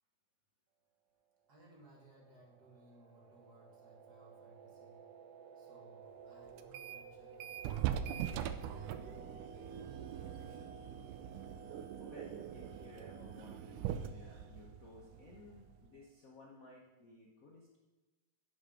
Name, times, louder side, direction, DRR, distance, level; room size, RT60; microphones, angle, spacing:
sound 1, 1.4-16.0, right 4 dB, 60° right, 1.7 m, -57 dB
voice 1, 1.5-5.0 5.6-9.4 9.7-10.8, right 2 dB, 35° right, -2 dB, 1.9 m, -62 dB
sound 2, 6.6-7.1 7.4-15.9, right 10 dB, 85° right, 2.1 m, -42 dB
voice 2, 11.7-17.8, left 3 dB, 85° left, -2 dB, 0.7 m, -57 dB
11.0 x 6.4 x 5.2 m, 1.2 s
omnidirectional pair, 3.5 m